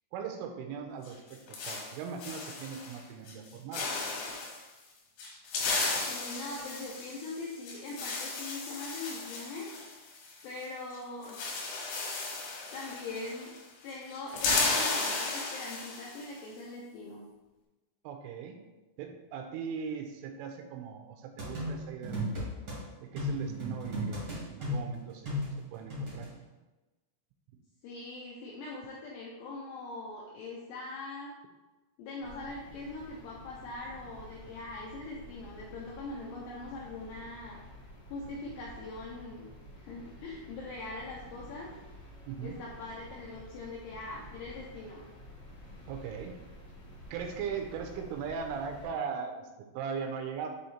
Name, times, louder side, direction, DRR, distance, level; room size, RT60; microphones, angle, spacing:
voice 1, 0.1-3.9 18.0-18.6 19.0-22.5 23.0-25.3 25.7-26.3 42.3-42.6 45.9-46.3 47.1-50.5, right 6 dB, 85° right, 4 dB, 3.0 m, -39 dB
sound 1, 1.0-3.0 3.3-3.5 3.7-4.6 5.2-10.7 10.9-11.0 11.2-13.6 13.9-16.3, left 3 dB, 70° left, 3.1 m, -34 dB
voice 2, 6.1-9.7 10.4-11.4 12.7-13.5 13.8-17.2 27.8-31.3 32.0-37.6 38.1-39.5 39.8-41.7 42.4-45.0, left 2 dB, 85° left, -3 dB, 2.4 m, -42 dB
sound 2, 21.4-22.8 23.2-26.3, left 1 dB, 65° right, 0.9 m, -35 dB
sound 3, 32.2-48.9, left 1 dB, 50° left, 1.3 m, -51 dB
7.6 x 3.1 x 4.2 m, 1.1 s
omnidirectional pair, 5.7 m